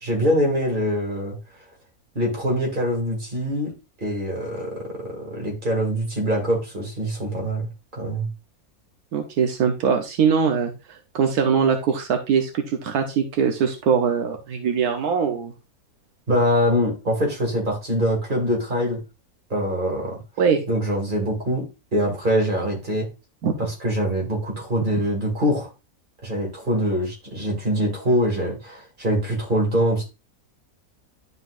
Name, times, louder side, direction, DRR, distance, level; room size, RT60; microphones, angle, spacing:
voice 1, 0.0-1.4 2.1-3.7 4.0-8.3 16.3-19.0 19.5-20.2 20.7-21.6 21.9-23.1 23.8-25.7 26.2-30.0, equal, 30° right, -1 dB, 2.4 m, -24 dB
voice 2, 9.1-15.5 20.4-20.6 23.4-23.5, right 6 dB, 80° right, 4 dB, 1.3 m, -22 dB
11.0 x 4.1 x 2.5 m, 0.28 s
omnidirectional pair, 1.6 m